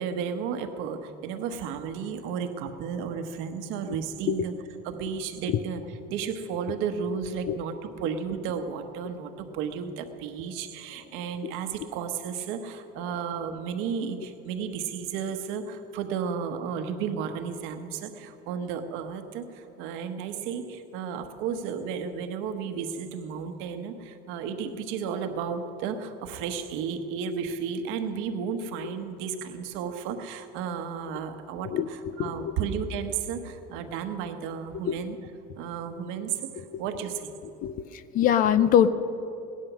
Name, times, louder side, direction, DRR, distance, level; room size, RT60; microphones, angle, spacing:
voice 1, 0.0-4.5 4.8-5.8 6.1-35.2 35.5-37.3, right 6 dB, 70° right, 7 dB, 1.3 m, -33 dB
voice 2, 31.6-32.5 34.8-35.0 36.6-36.8 37.6-38.9, left 9 dB, 40° left, 14 dB, 0.6 m, -24 dB
18.0 x 11.0 x 6.2 m, 2.8 s
cardioid pair, 170°, 21 cm